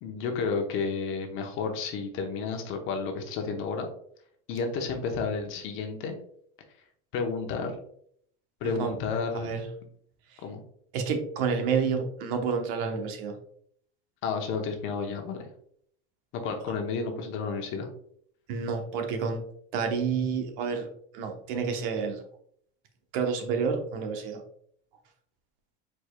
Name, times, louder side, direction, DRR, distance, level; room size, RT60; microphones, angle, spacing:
voice 1, 0.0-3.9 4.5-6.2 7.1-7.7 8.6-9.6 10.4-10.6 14.2-15.5 16.3-17.9, left 5 dB, 45° left, 3 dB, 0.9 m, -31 dB
voice 2, 8.6-9.0 9.3-9.7 10.9-13.3 18.5-19.4 19.7-22.2 23.1-24.4, right 5 dB, 70° right, 5 dB, 1.0 m, -29 dB
4.8 x 4.4 x 2.2 m, 0.65 s
supercardioid pair, 155°, 29 cm